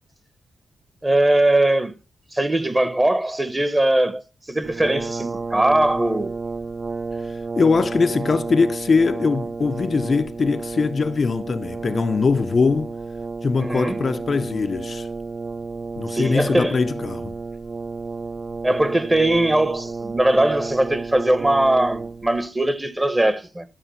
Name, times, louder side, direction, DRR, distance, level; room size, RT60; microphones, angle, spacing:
voice 1, 1.0-1.9 2.3-4.2 4.5-6.3 13.6-14.0 16.1-16.8 18.6-23.6, right 1 dB, 20° right, 1.1 m, -20 dB
Brass instrument, 4.6-22.4, right 4 dB, 40° right, 0.6 m, -31 dB
voice 2, 7.2-12.9 13.4-15.1 16.0-17.4, left 4 dB, 50° left, 0.5 m, -21 dB
13.0 x 5.0 x 5.6 m
cardioid pair, 80°, 0 cm